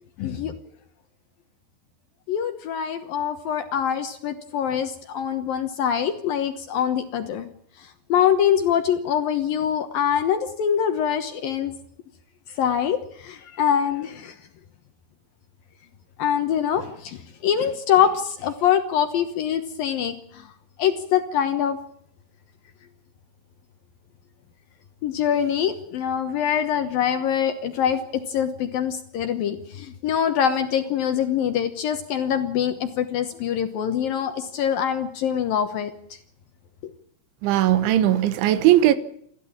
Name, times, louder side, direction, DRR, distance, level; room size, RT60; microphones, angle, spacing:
voice 1, 0.2-0.5 2.3-7.5 8.1-11.7 12.6-13.0 13.2-14.3 16.2-17.2 17.4-20.1 20.8-21.8 25.0-28.0 28.3-35.9, left 9 dB, 65° left, 2.4 m, -24 dB
voice 2, 37.4-39.0, right 13 dB, 80° right, 3.5 m, -18 dB
28.5 x 13.0 x 8.7 m
omnidirectional pair, 5.3 m